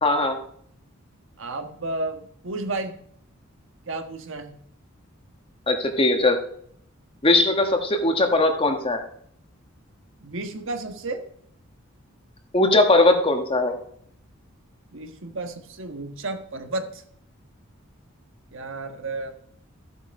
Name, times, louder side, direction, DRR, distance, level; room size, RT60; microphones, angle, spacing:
voice 1, 0.0-0.4 5.7-6.4 7.2-9.0 12.5-13.8, left 2 dB, 25° left, 5 dB, 1.4 m, -19 dB
voice 2, 1.4-3.0 3.9-4.6 10.2-11.2 14.9-17.0 18.5-19.3, right 2 dB, 65° right, 6 dB, 1.4 m, -32 dB
14.0 x 8.2 x 5.4 m, 0.65 s
head